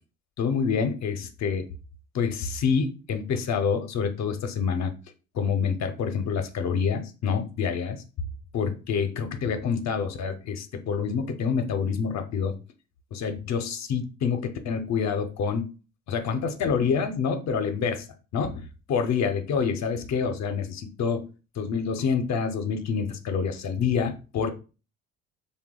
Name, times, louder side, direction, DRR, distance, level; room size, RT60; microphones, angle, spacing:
voice 1, 0.4-1.7 2.1-4.9 5.3-8.0 8.5-12.6 13.1-15.7 16.1-18.1 18.3-21.3 21.6-24.5, left 6 dB, 45° left, 7 dB, 0.6 m, -27 dB
2.7 x 2.2 x 3.6 m, 0.33 s
hypercardioid pair, 70°, 38 cm